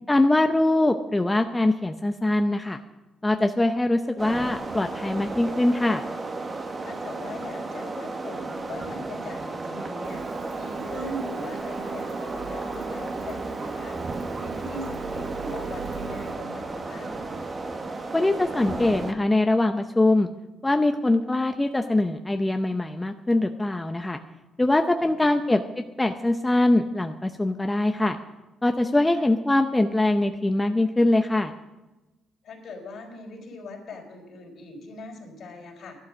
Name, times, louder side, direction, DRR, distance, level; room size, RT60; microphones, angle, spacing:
voice 1, 0.1-2.8 3.2-6.0 18.1-20.3 20.6-24.2 24.6-25.6 26.0-28.2 28.6-31.5, left 2 dB, 15° left, 6 dB, 0.7 m, -22 dB
sound 1, 4.2-19.1, right 3 dB, 35° right, 1.4 m, -34 dB
voice 2, 6.8-17.1 25.0-25.4 29.2-29.3 32.4-35.9, left 1 dB, 65° left, 1 dB, 4.4 m, -40 dB
Printer, 10.0-16.4, right 5 dB, 60° right, 1.2 m, -38 dB
12.0 x 12.0 x 6.3 m, 1.1 s
cardioid pair, 90°, 0 cm